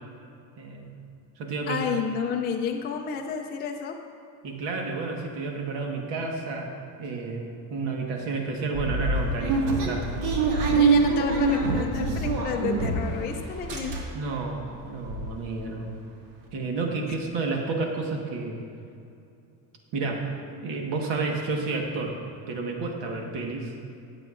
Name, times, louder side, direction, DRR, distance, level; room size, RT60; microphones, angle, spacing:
voice 1, 0.6-0.9 1.4-1.9 4.4-6.7 7.0-10.1 10.7-10.9 14.1-16.0 16.5-18.6 19.9-20.2 20.6-22.2 22.5-23.7, right 3 dB, 60° right, 1 dB, 1.5 m, -31 dB
voice 2, 1.7-4.0 10.7-14.0, left 6 dB, 25° left, 2 dB, 0.4 m, -30 dB
sound 1, 8.7-13.2 13.5-14.4 14.7-14.8 15.0-15.3, right 3 dB, 85° right, 1.9 m, -24 dB
20.0 x 7.6 x 2.5 m, 2.6 s
cardioid pair, 150°, 48 cm